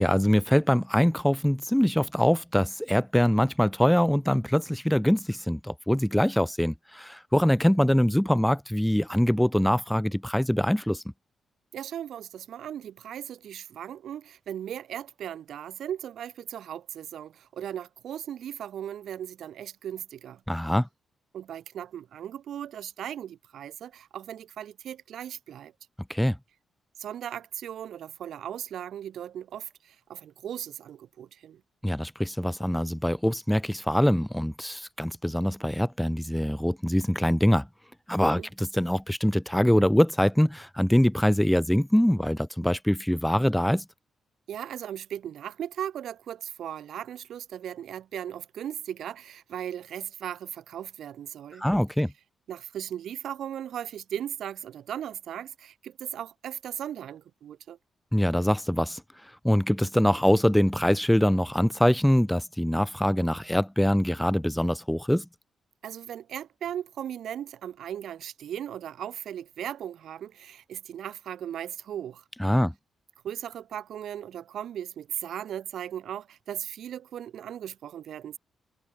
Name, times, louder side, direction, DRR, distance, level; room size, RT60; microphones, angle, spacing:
voice 1, 0.0-11.0 20.5-20.9 26.1-26.4 31.8-37.7 38.1-43.8 51.6-52.1 58.1-65.3 72.4-72.7, equal, 5° left, 0.6 m, -24 dB
voice 2, 11.7-20.4 21.3-25.7 27.0-31.6 38.4-38.5 44.5-51.7 52.5-57.8 65.8-72.2 73.2-78.4, right 10 dB, 75° right, 2.4 m, -37 dB
supercardioid pair, 55°, 0 cm